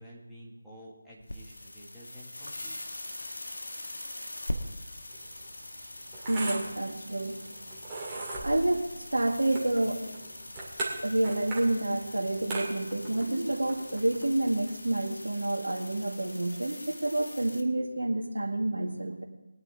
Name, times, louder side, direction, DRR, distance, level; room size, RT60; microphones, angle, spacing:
voice 1, 0.0-2.8, equal, ahead, -10 dB, 1.9 m, -50 dB
sound 1, 1.2-17.6, left 1 dB, 65° left, 1.5 m, -42 dB
sound 2, 5.1-14.9, right 2 dB, 15° right, 2.2 m, -40 dB
voice 2, 6.3-7.4 8.4-10.0 11.0-19.2, right 1 dB, 70° right, 3 dB, 1.9 m, -29 dB
21.0 x 9.7 x 3.6 m, 0.99 s
figure-of-eight pair, 160°, 0 cm